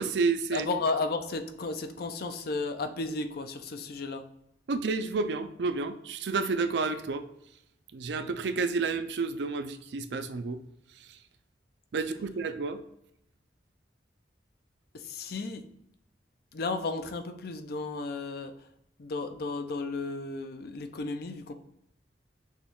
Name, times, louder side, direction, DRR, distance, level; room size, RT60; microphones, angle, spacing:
voice 1, 0.0-0.7 4.7-7.2 7.9-10.6 11.0-11.1 11.9-12.8, right 4 dB, 70° right, 0.4 m, -30 dB
voice 2, 0.5-4.3 14.9-15.7 16.5-18.7 19.0-21.5, left 3 dB, 60° left, 0.5 m, -33 dB
6.3 x 2.3 x 3.5 m
head